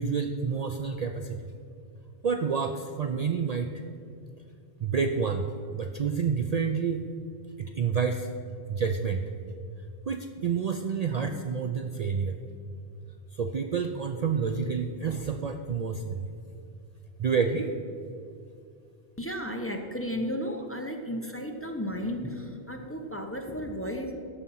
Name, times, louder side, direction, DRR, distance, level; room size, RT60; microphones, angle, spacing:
voice 1, 0.0-1.5 2.2-3.7 4.8-5.5 5.7-7.0 7.6-8.3 8.7-9.3 10.1-12.4 13.3-16.3 17.2-17.7, right 6 dB, 50° right, 6 dB, 0.5 m, -29 dB
voice 2, 19.2-24.1, equal, 15° left, 3 dB, 0.7 m, -34 dB
14.0 x 5.7 x 5.6 m, 2.5 s
omnidirectional pair, 1.0 m